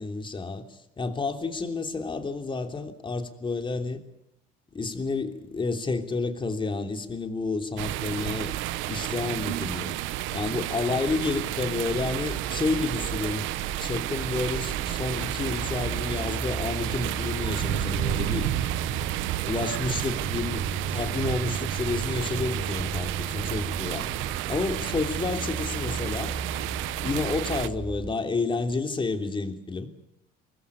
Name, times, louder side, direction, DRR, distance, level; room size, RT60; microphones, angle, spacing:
voice 1, 0.0-4.0 4.7-8.5 8.9-9.9 10.3-13.4 13.8-18.5 19.4-24.1 24.5-26.3 27.0-29.9, left 3 dB, 25° left, 6 dB, 3.1 m, -30 dB
sound 1, 7.8-27.7, right 14 dB, 75° right, 1.0 m, -31 dB
sound 2, 11.0-28.1, right 3 dB, 20° right, 2.4 m, -37 dB
24.5 x 20.0 x 8.4 m, 0.83 s
supercardioid pair, 100°, 20 cm